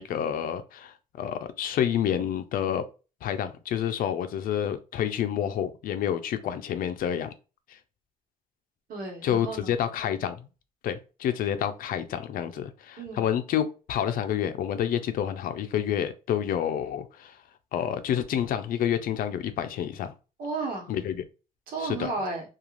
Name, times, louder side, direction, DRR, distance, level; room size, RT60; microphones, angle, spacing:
voice 1, 0.0-2.8 3.2-7.3 7.7-7.8 9.2-10.5 10.8-17.4 17.7-20.1 20.9-21.2 21.8-22.1, left 9 dB, 75° left, 0.4 m, -29 dB
voice 2, 8.9-9.7 13.0-13.3 20.4-20.9 21.7-22.4, right 3 dB, 80° right, 1.1 m, -33 dB
2.4 x 2.4 x 3.0 m
cardioid pair, 120°, 15 cm